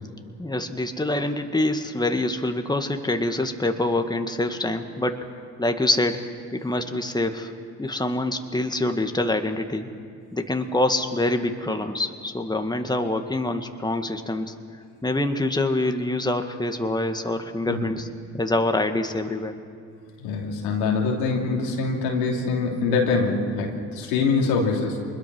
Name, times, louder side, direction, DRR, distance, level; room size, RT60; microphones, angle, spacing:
voice 1, 0.4-5.3 5.6-7.5 7.8-9.9 10.3-14.5 15.0-18.1 18.3-19.6, left 2 dB, 10° left, 6 dB, 1.9 m, -25 dB
voice 2, 20.2-25.0, left 4 dB, 90° left, 0 dB, 3.0 m, -24 dB
25.0 x 21.0 x 6.2 m, 2.3 s
hypercardioid pair, 50°, 41 cm